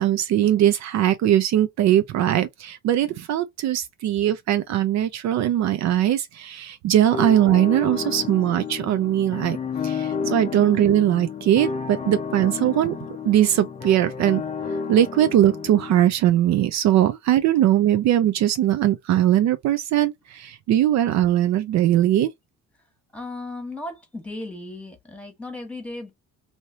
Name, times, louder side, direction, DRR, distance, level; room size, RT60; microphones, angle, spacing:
voice 1, 0.0-9.6 9.8-12.9 13.2-14.4 14.9-22.3, right 12 dB, 60° right, 0.5 m, -20 dB
sound 1, 7.1-16.0, left 5 dB, 25° left, 0.4 m, -31 dB
voice 2, 23.1-26.1, left 2 dB, 5° left, 1.2 m, -35 dB
3.2 x 2.8 x 2.7 m
cardioid pair, 130°, 31 cm